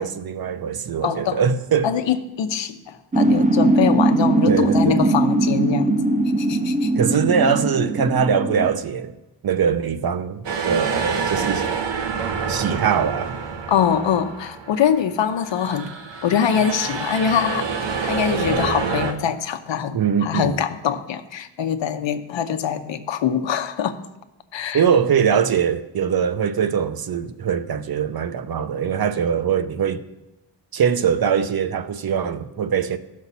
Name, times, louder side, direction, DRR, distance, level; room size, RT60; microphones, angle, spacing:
voice 1, 0.0-1.9 4.5-5.1 7.0-9.1 9.4-11.7 12.5-13.4 19.9-20.6 24.7-30.0 30.7-33.0, right 7 dB, 55° right, 0.8 m, -22 dB
voice 2, 1.0-1.4 1.8-6.9 13.7-15.8 16.2-17.7 18.0-24.0 24.5-24.8, left 8 dB, 85° left, 0.9 m, -23 dB
sound 1, 3.1-8.7, right 2 dB, 20° right, 0.6 m, -20 dB
sound 2, 10.4-15.0 15.4-19.1, right 5 dB, 80° right, 1.2 m, -27 dB
16.0 x 6.4 x 4.1 m
wide cardioid pair, 120°, 43 cm